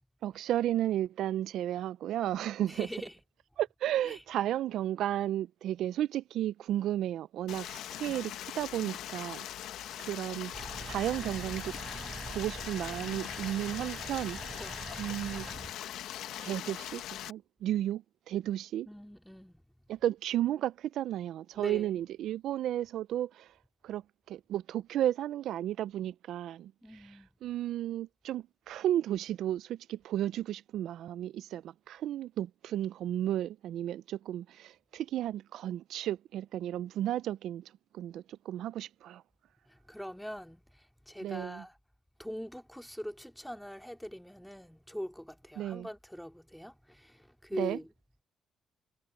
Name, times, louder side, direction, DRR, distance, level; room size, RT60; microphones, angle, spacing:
voice 1, 0.2-3.0 3.6-9.5 10.0-11.7 12.3-15.5 16.4-17.0 17.3-18.9 19.9-23.5 23.8-24.0 24.3-39.2 41.2-41.7 45.6-45.9 47.5-47.8, right 12 dB, 80° right, 0.4 m, -33 dB
voice 2, 2.6-3.1 4.0-4.2 9.8-10.1 14.6-14.8 18.9-19.6 21.6-21.9 26.8-27.3 39.7-41.7 42.2-47.9, equal, ahead, 2.4 m, -43 dB
Stream, 7.5-17.3, left 12 dB, 85° left, 1.0 m, -41 dB
sound 1, 10.5-15.7, right 4 dB, 30° right, 3.7 m, -44 dB
cardioid pair, 90°, 0 cm